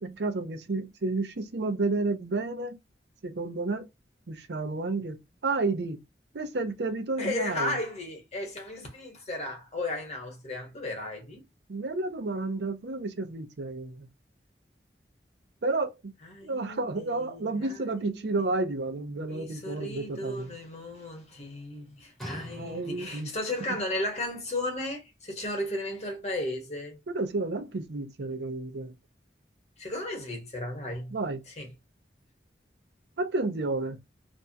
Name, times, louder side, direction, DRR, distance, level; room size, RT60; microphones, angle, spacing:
voice 1, 0.0-2.8 3.2-3.9 4.3-6.0 6.3-7.8 11.7-14.1 15.6-16.1 16.4-20.6 22.5-23.3 27.1-28.9 31.1-31.4 33.2-34.0, right 3 dB, 75° right, 0.6 m, -31 dB
voice 2, 7.2-11.4 16.3-18.5 19.3-27.0 29.8-31.1 31.5-31.7, left 1 dB, 40° left, 1.1 m, -35 dB
sound 1, 22.2-23.5 24.2-24.3, right 1 dB, ahead, 0.9 m, -42 dB
2.6 x 2.2 x 2.6 m
head